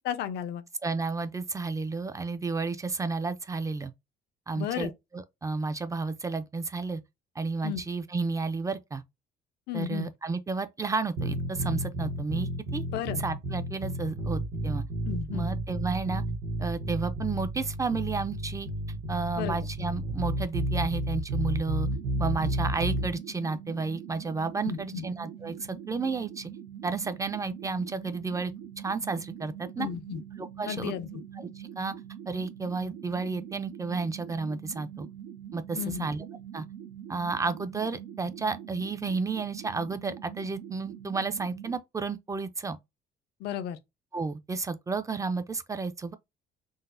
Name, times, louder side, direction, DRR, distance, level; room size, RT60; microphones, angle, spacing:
voice 1, 0.0-0.7 4.6-4.9 7.6-7.8 9.7-10.1 12.9-13.2 15.1-15.5 19.4-19.7 24.6-25.0 29.8-30.2 30.7-31.1 35.8-36.1 43.4-43.8, left 9 dB, 75° left, 0.6 m, -33 dB
voice 2, 0.8-3.9 4.5-7.0 7.4-9.0 9.7-12.8 13.2-14.8 15.3-16.2 16.6-18.7 19.1-21.9 22.2-26.5 26.8-29.9 30.4-30.9 31.4-31.9 32.3-35.1 35.5-36.2 36.5-36.7 37.1-42.8 44.1-46.1, right 4 dB, 20° right, 0.4 m, -32 dB
sound 1, 11.2-23.1, right 1 dB, 75° right, 1.1 m, -31 dB
sound 2, 21.8-41.8, right 10 dB, 90° right, 0.7 m, -44 dB
3.9 x 2.0 x 2.5 m
cardioid pair, 110°, 17 cm